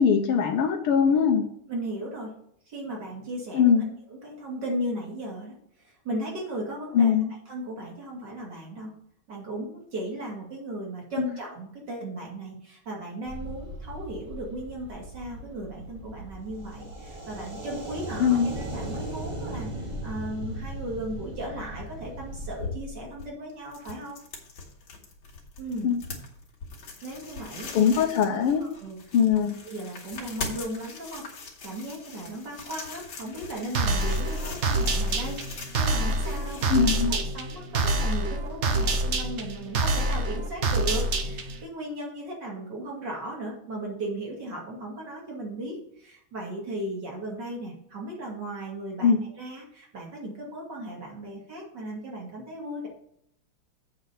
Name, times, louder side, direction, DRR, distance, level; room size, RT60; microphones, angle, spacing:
voice 1, 0.0-1.5 3.5-3.9 6.9-7.3 11.2-11.3 18.2-18.5 25.8-26.0 27.7-28.6 29.1-29.5 36.7-37.1 49.0-49.2, left 7 dB, 85° left, 2 dB, 1.7 m, -21 dB
voice 2, 1.7-2.3 2.7-3.7 4.0-7.1 7.5-8.9 9.3-24.2 25.6-25.9 27.0-27.9 28.6-29.0 29.6-31.3 31.6-36.8 37.1-52.9, right 1 dB, 50° right, -2 dB, 2.9 m, -36 dB
sound 1, 13.2-22.6, right 1 dB, 30° right, 0.5 m, -38 dB
sound 2, 22.2-37.4, left 4 dB, 70° left, 2.3 m, -42 dB
sound 3, 33.7-41.6, right 2 dB, 80° right, 0.6 m, -26 dB
7.8 x 4.1 x 6.8 m, 0.70 s
omnidirectional pair, 2.4 m